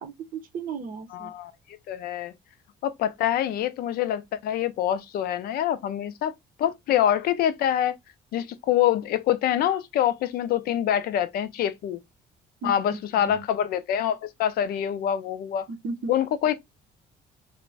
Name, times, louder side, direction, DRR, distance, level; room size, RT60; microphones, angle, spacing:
voice 1, 0.0-1.3 12.6-13.5 15.7-16.1, right 4 dB, 55° right, 0.6 m, -36 dB
voice 2, 1.1-1.5 1.9-2.3 2.8-6.3 6.6-8.0 8.3-12.0 12.6-15.7 16.1-16.5, left 10 dB, 65° left, 0.4 m, -25 dB
2.4 x 2.1 x 3.1 m
cardioid pair, 110°, 17 cm